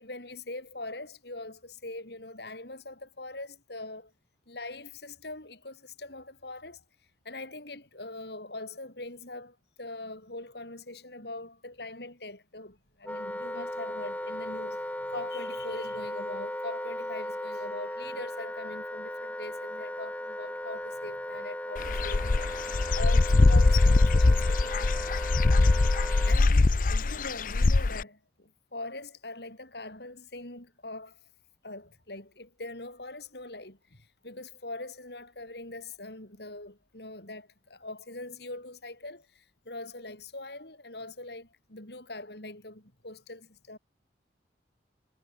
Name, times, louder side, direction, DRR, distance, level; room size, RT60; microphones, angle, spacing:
voice 1, 0.0-4.1 4.5-6.8 7.2-25.1 26.2-31.2 31.6-43.8, left 2 dB, 65° left, 5.0 m, -42 dB
Wind instrument woodwind instrument, 13.0-26.4, left 1 dB, 10° left, 2.3 m, -37 dB
Dog / Bird, 21.8-28.0, left 3 dB, 45° left, 0.6 m, -22 dB
head